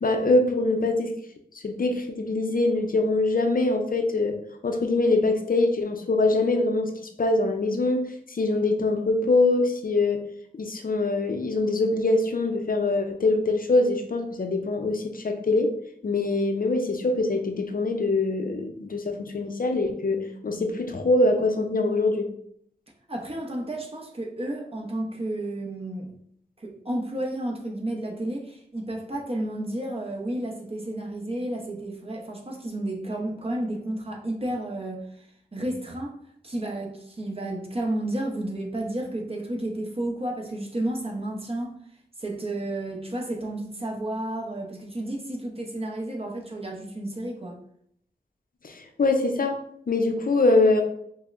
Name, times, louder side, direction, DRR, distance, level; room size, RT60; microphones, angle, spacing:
voice 1, 0.0-1.1 1.6-4.4 4.6-6.9 7.2-10.2 10.6-15.7 16.0-22.3 48.6-49.5 49.9-50.8, left 2 dB, 55° left, 4 dB, 0.5 m, -23 dB
voice 2, 23.1-26.1 26.6-35.2 35.5-36.1 36.4-41.8 42.2-47.6, right 1 dB, 35° right, 0 dB, 0.7 m, -32 dB
5.5 x 2.0 x 2.5 m, 0.69 s
wide cardioid pair, 70°, 18 cm